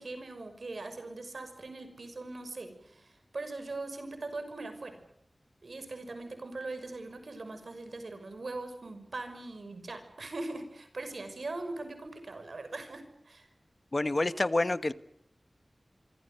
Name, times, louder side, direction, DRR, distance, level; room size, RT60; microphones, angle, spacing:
voice 1, 0.0-5.0 5.6-13.5, right 2 dB, 80° right, 9 dB, 5.9 m, -41 dB
voice 2, 13.9-14.9, left 2 dB, 45° left, 13 dB, 1.2 m, -28 dB
26.0 x 25.5 x 6.9 m, 0.71 s
wide cardioid pair, 75°, 0 cm